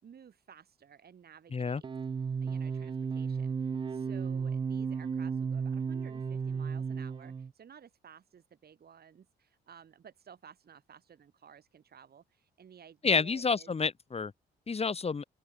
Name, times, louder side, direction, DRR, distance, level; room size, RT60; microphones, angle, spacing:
voice 1, 0.0-1.9 2.4-13.7, right 8 dB, 50° right, 4.0 m, -55 dB
sound 1, 1.8-7.5, right 6 dB, 25° right, 0.4 m, -34 dB
voice 2, 13.0-14.3 14.7-15.3, left 5 dB, 30° left, 2.0 m, -29 dB
open air
cardioid pair, 90°, 20 cm